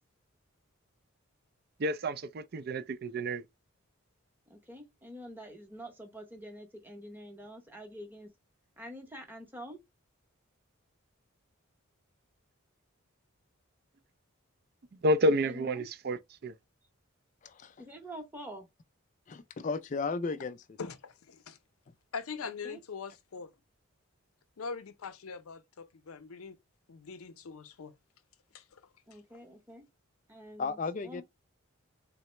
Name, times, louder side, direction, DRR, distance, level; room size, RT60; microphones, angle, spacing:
voice 1, 1.8-3.4 15.0-16.2 16.4-16.5, equal, 50° right, 0.4 m, -29 dB
voice 2, 4.5-8.3 8.8-9.8 15.4-15.9 17.8-18.7 22.4-22.8 29.1-29.9 30.3-30.8 31.0-31.2, equal, 10° right, 0.8 m, -46 dB
voice 3, 17.4-17.8 19.3-20.8 30.6-31.2, left 4 dB, 35° left, 0.3 m, -35 dB
voice 4, 20.8-21.6 22.1-23.5 24.6-26.6 26.9-27.9 28.5-28.8, left 5 dB, 90° left, 0.6 m, -42 dB
3.8 x 2.0 x 4.3 m
head